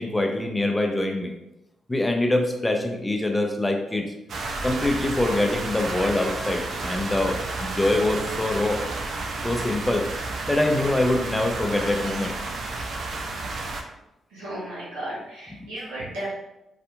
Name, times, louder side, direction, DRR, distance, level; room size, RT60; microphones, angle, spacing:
voice 1, 0.0-1.3 1.9-4.1 4.6-8.8 9.4-10.1 10.5-12.4 15.6-15.7, left 1 dB, 15° left, 3 dB, 0.5 m, -24 dB
sound 1, 4.3-13.8, right 3 dB, 60° right, 0.4 m, -31 dB
voice 2, 14.3-16.3, right 1 dB, 85° right, -9 dB, 1.0 m, -34 dB
2.6 x 2.5 x 2.3 m, 0.91 s
hypercardioid pair, 40°, 0 cm